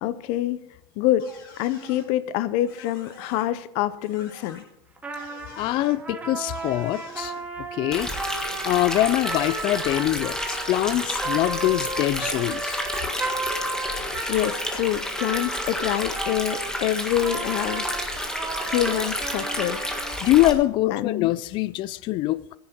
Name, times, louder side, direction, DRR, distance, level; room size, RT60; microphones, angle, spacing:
voice 1, 0.0-0.6 1.0-1.3 1.6-4.6 13.7-17.9 18.6-19.9 20.9-21.3, left 13 dB, 55° left, 0.8 m, -26 dB
sound 1, 1.2-2.1 2.6-3.4 4.0-4.6 5.1-6.0 6.5-7.4, left 2 dB, 75° left, 5.1 m, -47 dB
Trumpet, 5.0-16.7 17.2-20.2, right 2 dB, 10° right, 1.9 m, -34 dB
voice 2, 5.6-7.3 7.7-8.1 8.6-12.8 18.8-19.0 20.2-22.4, left 15 dB, 40° left, 0.4 m, -23 dB
Stream, 7.9-20.5, left 1 dB, 5° left, 1.7 m, -30 dB
14.5 x 10.0 x 4.5 m
supercardioid pair, 120°, 12 cm